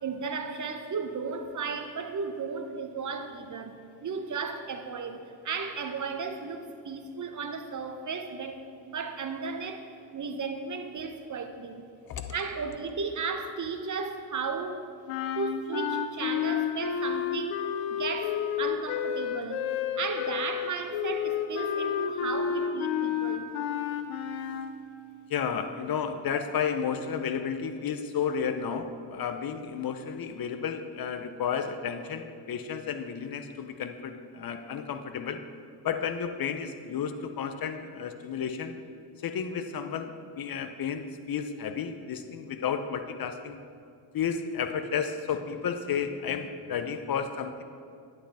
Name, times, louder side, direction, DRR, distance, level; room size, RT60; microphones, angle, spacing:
voice 1, 0.0-9.8 10.1-11.9 12.3-14.9 15.4-17.6 17.9-23.5, right 5 dB, 40° right, 6 dB, 0.8 m, -35 dB
sound 1, 15.1-24.7, left 8 dB, 90° left, 0.6 m, -30 dB
voice 2, 25.3-35.4 35.8-38.7 39.2-43.6 44.1-47.6, left 7 dB, 50° left, 8 dB, 0.6 m, -32 dB
11.0 x 5.1 x 3.5 m, 2.4 s
supercardioid pair, 55°, 48 cm